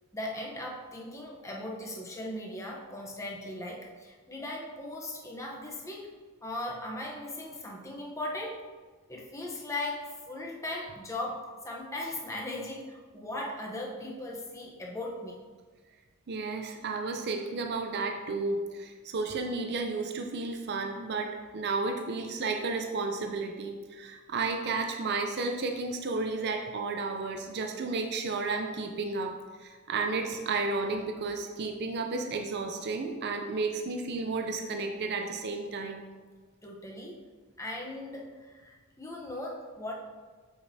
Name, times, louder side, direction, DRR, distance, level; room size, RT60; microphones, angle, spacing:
voice 1, 0.1-6.1 6.4-8.7 9.1-15.4 36.6-37.2 37.6-39.9, left 1 dB, 15° left, -1 dB, 0.8 m, -38 dB
voice 2, 16.3-36.0, right 3 dB, 50° right, 3 dB, 0.5 m, -32 dB
7.9 x 5.1 x 2.7 m, 1.4 s
head